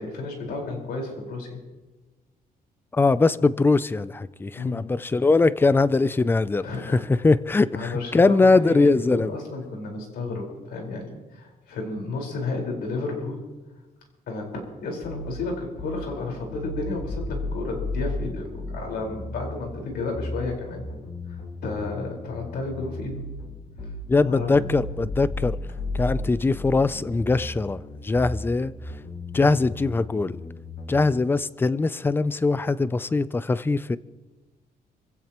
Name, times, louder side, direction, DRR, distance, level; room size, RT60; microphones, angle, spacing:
voice 1, 0.0-1.6 4.5-4.9 6.6-7.0 7.7-13.4 14.3-20.8 21.3-23.2 24.2-24.7 29.3-29.6, left 3 dB, 90° left, 4.7 m, -32 dB
voice 2, 2.9-7.0 7.2-9.3 24.1-25.6 25.9-28.7 29.3-30.4 30.9-34.0, left 3 dB, 15° left, 0.4 m, -21 dB
sound 1, 15.0-31.0, left 2 dB, 55° left, 5.2 m, -35 dB
27.5 x 16.0 x 3.0 m
cardioid pair, 150°, 16 cm